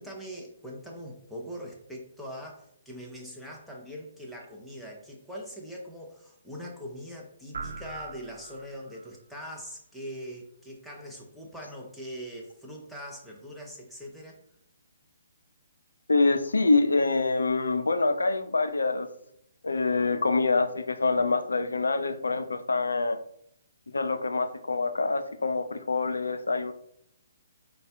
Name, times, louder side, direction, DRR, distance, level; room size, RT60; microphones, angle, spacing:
voice 1, 0.0-14.4, equal, ahead, -2 dB, 0.7 m, -42 dB
sound 1, 7.5-9.1, right 4 dB, 70° right, 0.4 m, -40 dB
voice 2, 16.1-19.1 19.6-23.2 23.9-26.7, left 3 dB, 85° left, 10 dB, 0.4 m, -25 dB
4.1 x 2.2 x 3.3 m, 0.72 s
figure-of-eight pair, 135°, 0 cm